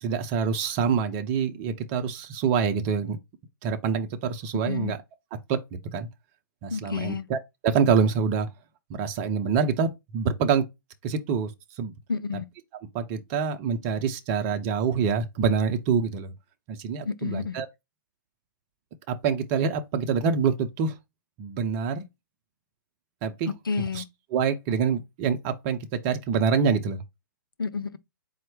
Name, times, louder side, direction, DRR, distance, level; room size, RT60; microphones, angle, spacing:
voice 1, 0.0-3.2 3.6-5.0 5.5-5.6 5.9-6.1 6.6-8.5 8.9-10.7 11.0-11.5 11.8-11.9 12.9-16.3 16.7-17.7 19.1-21.0 21.4-22.0 23.2-23.5 23.9-24.0 24.3-27.0, right 6 dB, 30° right, 0.6 m, -26 dB
voice 2, 4.7-5.0 6.7-7.3 12.1-12.5 17.0-17.6 23.7-24.1 27.6-28.0, left 5 dB, 85° left, 0.5 m, -30 dB
4.3 x 2.1 x 4.6 m
figure-of-eight pair, 125°, 11 cm